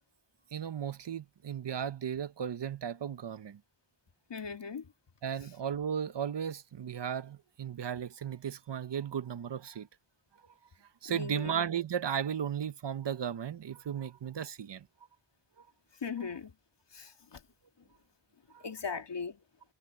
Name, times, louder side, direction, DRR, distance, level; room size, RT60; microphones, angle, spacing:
voice 1, 0.5-3.6 5.2-9.9 11.0-14.9 18.5-18.6, right 8 dB, 80° right, 0.9 m, -35 dB
voice 2, 4.3-4.9 11.1-11.5 16.0-16.5 16.9-17.4 18.6-19.4, left 5 dB, 90° left, 2.0 m, -38 dB
wide cardioid pair, 90°, 41 cm